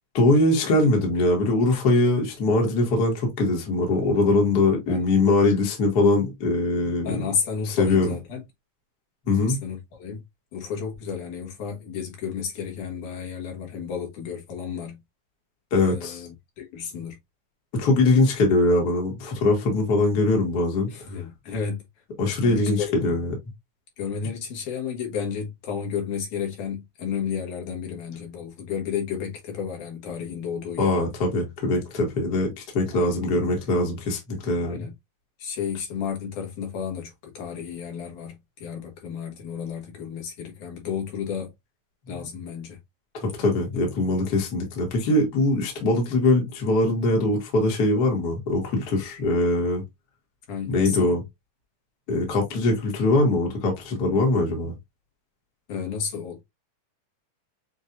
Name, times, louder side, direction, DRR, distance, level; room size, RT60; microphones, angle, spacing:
voice 1, 0.1-7.2 7.8-8.1 9.3-9.6 15.7-16.2 17.7-20.9 22.2-23.3 30.8-34.8 43.1-49.8 50.7-51.2 52.1-54.7, left 2 dB, 40° left, 1.7 m, -22 dB
voice 2, 6.8-8.4 9.4-10.2 10.5-15.0 15.8-17.2 20.9-21.8 22.2-23.1 24.0-31.0 32.9-33.3 34.6-34.9 35.4-41.5 42.1-42.8 50.5-51.1 55.7-56.4, left 7 dB, 75° left, 2.9 m, -32 dB
7.1 x 2.6 x 2.6 m
omnidirectional pair, 3.6 m